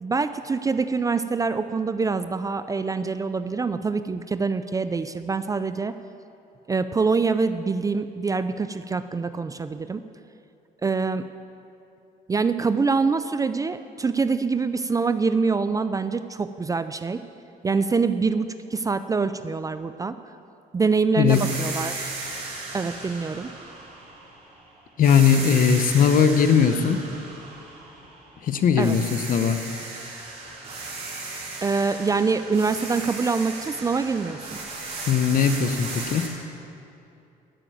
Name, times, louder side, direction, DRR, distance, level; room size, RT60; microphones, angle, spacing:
voice 1, 0.0-5.9 6.7-10.0 10.8-11.3 12.3-17.2 17.6-20.2 20.7-22.1 22.7-23.5 28.8-29.0 31.6-34.4, right 4 dB, 20° right, 11 dB, 0.4 m, -25 dB
sound 1, 21.3-24.6 25.0-28.4 28.8-36.3, right 3 dB, 35° right, 3.3 m, -36 dB
voice 2, 25.0-27.0 28.4-29.6 35.1-36.3, left 7 dB, 55° left, 9 dB, 0.9 m, -19 dB
12.5 x 6.8 x 9.1 m, 2.7 s
cardioid pair, 110°, 17 cm